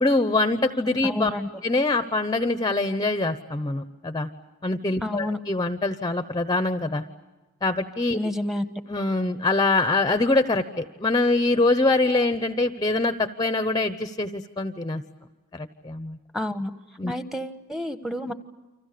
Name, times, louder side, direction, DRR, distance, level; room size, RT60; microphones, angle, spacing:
voice 1, 0.0-1.3 1.6-4.3 4.6-7.0 7.6-8.3 8.9-15.0 15.5-16.2 17.0-17.1, left 2 dB, 20° left, 11 dB, 0.9 m, -24 dB
voice 2, 1.0-1.5 5.0-5.4 8.1-8.7 16.3-16.7 17.1-18.3, left 1 dB, ahead, 10 dB, 1.3 m, -29 dB
30.0 x 25.5 x 6.7 m, 1.1 s
head